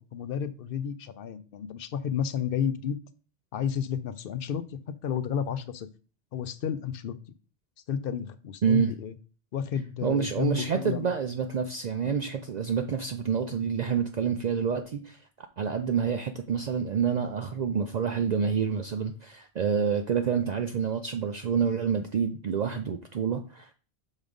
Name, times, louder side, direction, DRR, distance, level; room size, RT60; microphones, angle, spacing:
voice 1, 0.0-3.0 3.5-5.9 6.3-7.1 7.9-9.1 9.5-11.1 12.0-12.2, left 8 dB, 65° left, 13 dB, 0.8 m, -31 dB
voice 2, 8.6-8.9 10.0-23.7, right 7 dB, 50° right, 6 dB, 0.6 m, -28 dB
6.3 x 3.7 x 5.2 m, 0.37 s
omnidirectional pair, 1.0 m